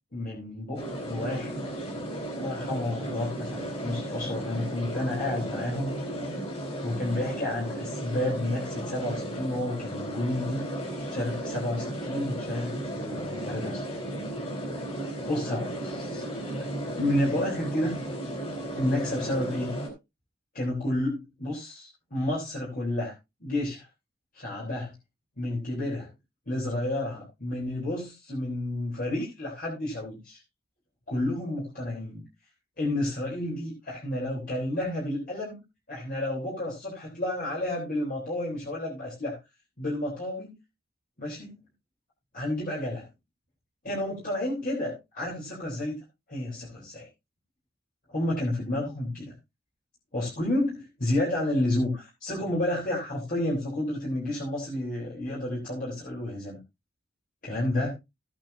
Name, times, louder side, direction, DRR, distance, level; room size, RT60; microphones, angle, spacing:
voice 1, 0.1-1.7 2.4-6.0 6.8-10.6 11.1-14.0 15.3-16.2 16.6-16.7 16.9-18.0 18.7-19.7 20.5-23.1 23.4-23.9 24.3-24.9 25.4-26.1 26.5-30.4 31.1-32.2 32.8-35.6 35.9-39.4 39.8-40.5 41.2-41.6 42.3-43.1 43.8-46.0 46.3-47.1 48.1-49.3 50.1-56.6 57.4-57.9, left 1 dB, 45° left, -3 dB, 3.5 m, -30 dB
sound 1, 0.8-19.9, right 1 dB, 30° left, 4.1 m, -35 dB
15.0 x 8.8 x 2.7 m, 0.24 s
head